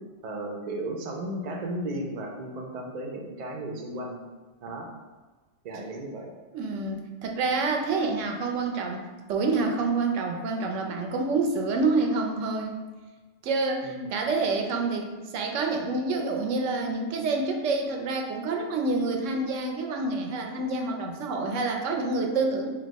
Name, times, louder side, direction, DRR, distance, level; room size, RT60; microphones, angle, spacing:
voice 1, 0.2-4.2 4.6-4.9 5.6-6.3 13.8-14.3, right 1 dB, 50° right, 1 dB, 0.5 m, -35 dB
voice 2, 6.5-12.8 13.4-22.7, right 3 dB, 85° right, 3 dB, 0.9 m, -27 dB
3.4 x 2.8 x 4.0 m, 1.3 s
omnidirectional pair, 1.3 m